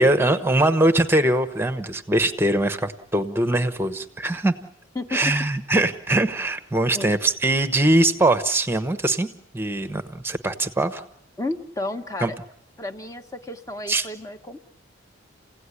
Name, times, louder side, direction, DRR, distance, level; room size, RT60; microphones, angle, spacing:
voice 1, 0.0-4.5 5.1-9.3 9.5-11.0 12.2-12.3 13.9-14.1, right 1 dB, 10° right, 10 dB, 1.1 m, -21 dB
voice 2, 11.4-12.4 12.8-14.6, left 2 dB, 15° left, 5 dB, 1.3 m, -32 dB
29.0 x 17.0 x 9.9 m, 0.80 s
head